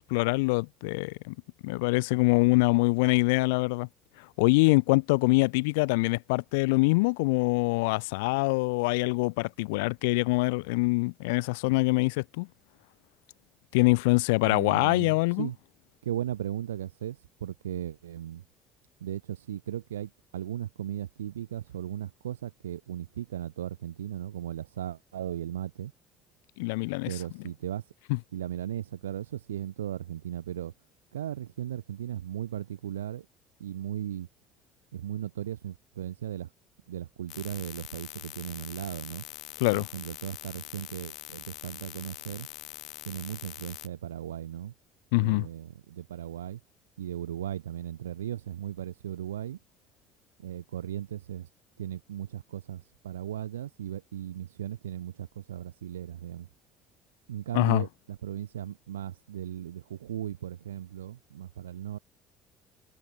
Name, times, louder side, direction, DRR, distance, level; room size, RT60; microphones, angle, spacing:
voice 1, 0.0-1.3 1.6-3.9 4.4-12.5 13.7-15.5 26.6-27.1 39.6-39.9 45.1-45.5 57.5-57.8, left 27 dB, 80° left, 0.4 m, -24 dB
voice 2, 14.4-15.6 16.0-18.4 19.0-25.9 27.1-27.9 28.3-30.7 31.1-33.3 33.6-34.3 34.9-36.5 36.9-39.2 39.7-42.5 43.1-44.7 45.1-46.6 47.0-49.6 50.4-51.5 51.8-56.5 57.3-62.0, right 11 dB, 90° right, 3.6 m, -37 dB
sound 1, 37.3-43.9, left 14 dB, 60° left, 3.3 m, -44 dB
hypercardioid pair, 65°, 0 cm